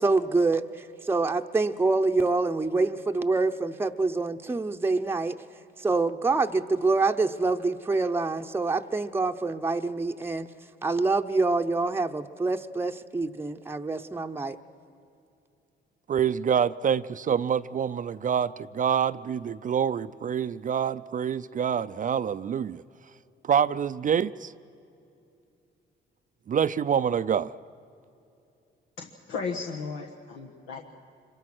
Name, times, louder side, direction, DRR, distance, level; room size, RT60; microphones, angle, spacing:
voice 1, 0.0-5.4 5.8-10.5 10.8-14.6, right 3 dB, 10° right, 4 dB, 0.8 m, -26 dB
voice 2, 16.1-22.8 23.4-24.5 26.5-27.5, right 8 dB, 40° right, 13 dB, 0.5 m, -26 dB
voice 3, 29.0-30.9, left 4 dB, 90° left, 1 dB, 1.5 m, -35 dB
26.0 x 23.0 x 6.1 m, 2.7 s
cardioid pair, 90°, 20 cm